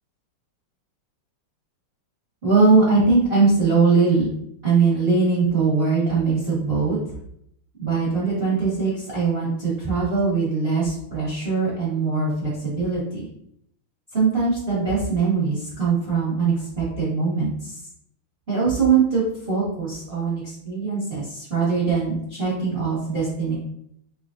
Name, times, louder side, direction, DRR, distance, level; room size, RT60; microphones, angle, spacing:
voice 1, 2.4-4.3 4.6-7.0 7.8-13.2 14.1-17.8 18.5-23.5, right 4 dB, 30° right, -9 dB, 1.3 m, -21 dB
4.0 x 3.1 x 2.5 m, 0.72 s
omnidirectional pair, 2.4 m